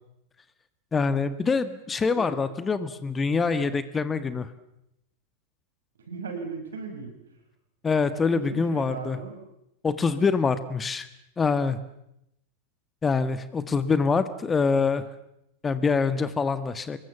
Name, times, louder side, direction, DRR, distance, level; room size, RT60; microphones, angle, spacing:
voice 1, 0.9-4.5 7.8-9.2 9.8-11.1 11.4-11.8 13.0-15.0 15.6-17.0, left 4 dB, 15° left, 13 dB, 1.5 m, -25 dB
voice 2, 6.1-7.1 8.3-9.4, right 4 dB, 65° right, 5 dB, 6.5 m, -37 dB
26.5 x 22.0 x 7.3 m, 0.81 s
figure-of-eight pair, 90°, 0 cm